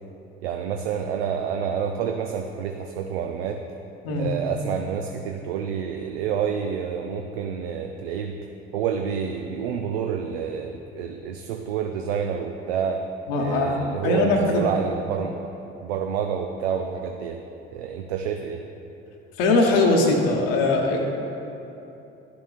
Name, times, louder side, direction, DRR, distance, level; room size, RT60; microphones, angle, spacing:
voice 1, 0.4-3.6 4.1-8.4 8.7-13.0 13.4-15.5 15.8-17.4 17.7-18.6, right 7 dB, 80° right, 4 dB, 0.5 m, -28 dB
voice 2, 13.3-13.8 14.0-14.6 19.4-21.0, left 2 dB, 70° left, 0 dB, 1.0 m, -20 dB
11.0 x 7.0 x 2.4 m, 2.9 s
figure-of-eight pair, 55°, 31 cm